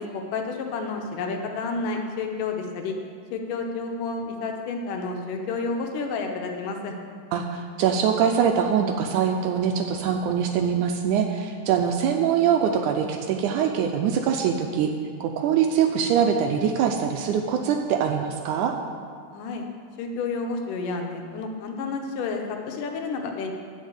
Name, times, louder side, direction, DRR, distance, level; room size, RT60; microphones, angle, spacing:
voice 1, 0.0-3.0 3.3-6.9 19.3-19.6 20.0-23.5, left 4 dB, 75° left, 3 dB, 2.4 m, -30 dB
voice 2, 7.3-14.9 15.2-18.7, right 7 dB, 80° right, 4 dB, 1.9 m, -23 dB
9.9 x 5.4 x 8.2 m, 2.3 s
omnidirectional pair, 3.9 m